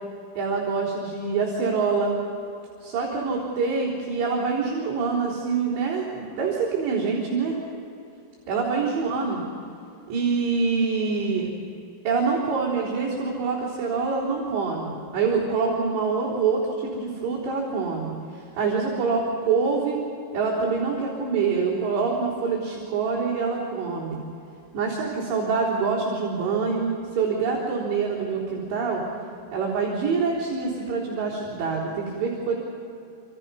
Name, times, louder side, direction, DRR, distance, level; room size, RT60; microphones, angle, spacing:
voice 1, 0.4-2.2 2.8-7.6 8.5-9.4 10.1-11.5 12.0-20.0 20.3-24.2 24.7-29.0 29.5-32.5, right 5 dB, 65° right, -7 dB, 5.9 m, -25 dB
28.0 x 27.5 x 5.6 m, 2.8 s
omnidirectional pair, 5.4 m